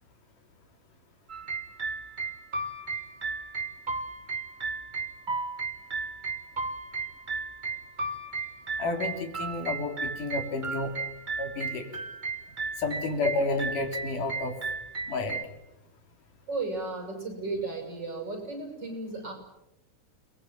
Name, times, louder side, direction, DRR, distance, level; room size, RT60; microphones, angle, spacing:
sound 1, 1.3-15.4, right 4 dB, 60° right, 0.4 m, -35 dB
voice 1, 8.8-10.9 11.4-11.9 12.8-14.5 15.1-15.4, left 3 dB, 85° left, 5 dB, 5.0 m, -30 dB
voice 2, 16.5-19.3, right 3 dB, 35° right, 3 dB, 7.8 m, -34 dB
29.5 x 21.5 x 7.6 m, 0.86 s
omnidirectional pair, 3.5 m